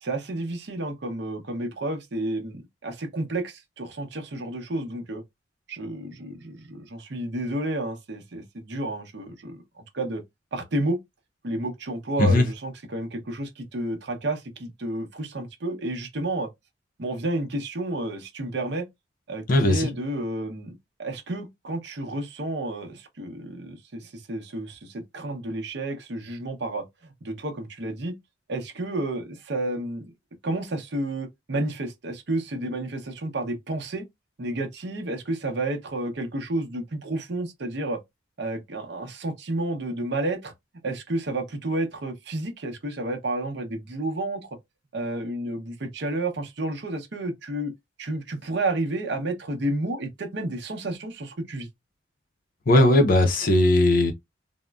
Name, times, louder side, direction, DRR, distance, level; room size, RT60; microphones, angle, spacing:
voice 1, 0.0-5.2 5.7-9.6 9.9-10.2 10.5-11.0 11.4-16.5 17.0-18.9 19.3-28.2 28.5-30.0 30.4-34.0 34.4-38.0 38.4-40.5 40.8-44.5 44.9-47.7 48.0-51.7, right 2 dB, 60° right, 0.7 m, -31 dB
voice 2, 19.5-19.9 52.7-54.1, left 1 dB, 45° left, 0.5 m, -18 dB
3.5 x 2.0 x 2.3 m
head